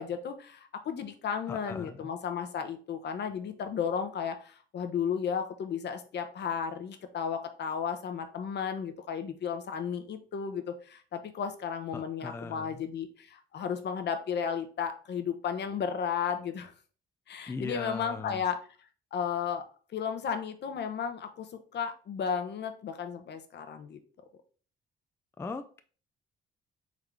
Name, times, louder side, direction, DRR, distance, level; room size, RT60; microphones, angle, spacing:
voice 1, 0.0-16.7 17.3-18.6 19.1-19.6 19.9-24.0, left 7 dB, 60° left, 7 dB, 0.7 m, -34 dB
voice 2, 1.5-2.1 11.9-12.8 17.5-18.4 25.4-25.8, left 4 dB, 15° left, 9 dB, 0.3 m, -39 dB
3.7 x 3.4 x 3.2 m, 0.41 s
cardioid pair, 90°, 20 cm